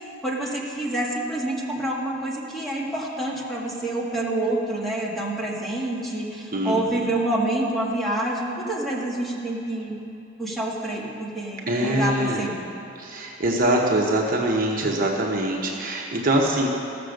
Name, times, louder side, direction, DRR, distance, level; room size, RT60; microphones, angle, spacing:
voice 1, 0.2-10.0 10.4-12.7, right 1 dB, ahead, -5 dB, 1.8 m, -27 dB
voice 2, 6.5-7.0 11.7-12.5 12.9-16.7, right 1 dB, 45° right, -1 dB, 1.1 m, -23 dB
16.0 x 6.9 x 6.5 m, 2.7 s
head